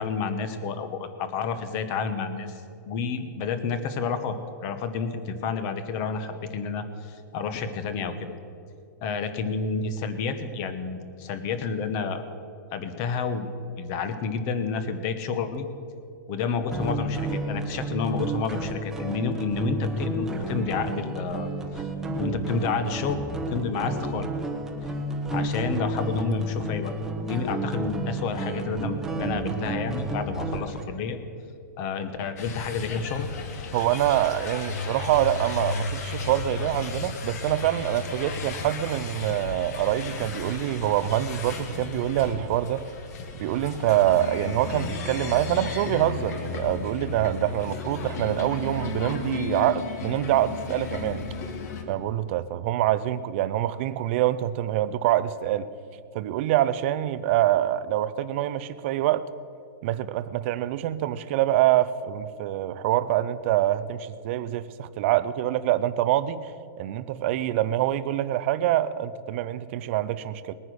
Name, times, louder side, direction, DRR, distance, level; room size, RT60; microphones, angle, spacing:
voice 1, 0.0-2.6 2.9-4.3 4.6-8.3 9.0-12.3 12.7-15.7 16.3-21.5 21.8-23.2 23.5-24.3 25.3-26.9 27.2-31.2 31.8-33.3, left 5 dB, 30° left, 10 dB, 1.1 m, -30 dB
sound 1, 16.7-30.8, right 2 dB, 5° right, 1.0 m, -31 dB
sound 2, 32.4-51.8, left 4 dB, 50° left, 1.8 m, -34 dB
voice 2, 33.7-42.9 43.4-51.3 51.9-55.7 56.1-59.2 59.8-66.5 66.8-70.5, right 13 dB, 35° right, 13 dB, 0.5 m, -25 dB
20.0 x 9.6 x 6.3 m, 2.6 s
hypercardioid pair, 165°, 11 cm